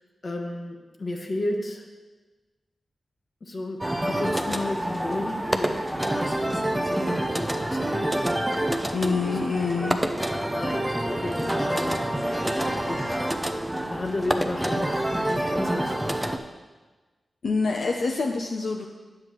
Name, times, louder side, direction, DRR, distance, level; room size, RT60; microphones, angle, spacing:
voice 1, 0.2-1.9 3.4-8.7 9.3-9.4 9.7-9.9 10.3-13.3 13.9-16.3, left 1 dB, 45° left, 3 dB, 1.0 m, -34 dB
sound 1, 3.8-16.4, right 1 dB, 10° right, 0.5 m, -27 dB
voice 2, 8.9-10.1 12.3-12.9 17.4-18.9, left 4 dB, 70° left, 2 dB, 0.5 m, -27 dB
9.6 x 7.7 x 3.0 m, 1.3 s
wide cardioid pair, 95°, 0 cm